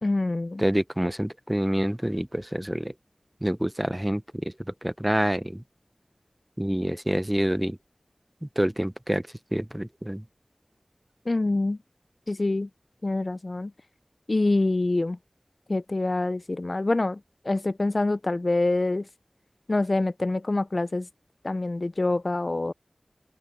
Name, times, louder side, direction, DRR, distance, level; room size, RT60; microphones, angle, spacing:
voice 1, 0.0-0.6 11.3-11.8 12.3-12.7 13.0-13.7 14.3-15.2 15.7-17.2 17.5-19.1 19.7-21.1 21.4-22.7, left 2 dB, 50° left, 0.4 m, -25 dB
voice 2, 0.6-2.9 3.4-4.5 4.8-5.6 6.6-7.8 8.4-9.2 9.5-10.2, right 1 dB, 15° right, 0.5 m, -27 dB
wide cardioid pair, 55°, 0 cm